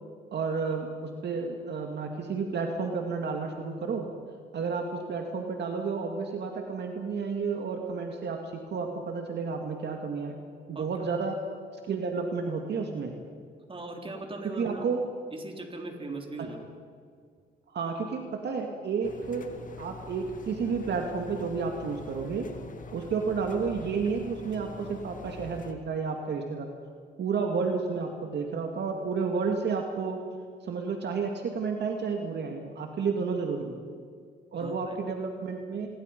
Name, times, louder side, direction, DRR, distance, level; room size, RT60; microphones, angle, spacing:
voice 1, 0.3-4.1 4.5-10.3 10.7-11.3 11.8-13.1 14.6-15.0 17.7-19.4 19.8-22.4 22.9-26.7 27.2-30.2 30.6-33.8 34.5-35.9, right 5 dB, 60° right, 3 dB, 2.3 m, -31 dB
voice 2, 10.7-11.1 13.7-14.9 15.3-16.6 34.5-35.0, right 2 dB, 25° right, 2 dB, 4.0 m, -39 dB
Engine, 19.0-25.7, left 4 dB, 40° left, 2.2 m, -45 dB
28.0 x 22.0 x 5.4 m, 2.1 s
cardioid pair, 90°, 20 cm